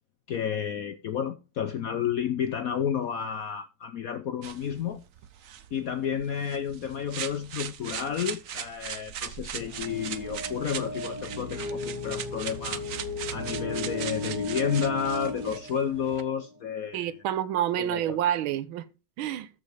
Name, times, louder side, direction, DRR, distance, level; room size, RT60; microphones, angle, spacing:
voice 1, 0.3-5.0 5.7-12.8 13.3-17.1 17.8-18.2, left 8 dB, 70° left, 0.8 m, -31 dB
sound 1, 4.4-16.2, right 9 dB, 65° right, 0.8 m, -39 dB
sound 2, 9.6-16.5, left 1 dB, 10° right, 1.5 m, -36 dB
voice 2, 16.9-18.9 19.2-19.5, right 11 dB, 85° right, 1.6 m, -28 dB
13.5 x 5.3 x 4.8 m
omnidirectional pair, 2.2 m